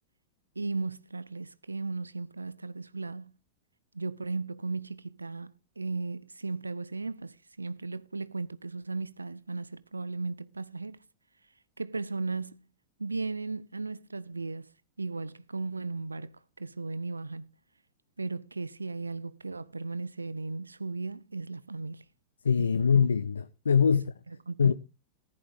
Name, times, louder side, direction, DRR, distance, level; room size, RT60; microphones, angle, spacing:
voice 1, 0.6-3.3 3.9-11.0 11.8-12.7 13.0-14.7 15.0-17.5 18.2-22.0 22.6-22.8 23.9-24.0 24.5-24.7, right 3 dB, 80° right, 0.5 m, -36 dB
voice 2, 22.4-24.1 24.6-24.7, left 6 dB, 70° left, 0.5 m, -23 dB
15.0 x 10.5 x 3.5 m
figure-of-eight pair, 90°, 0 cm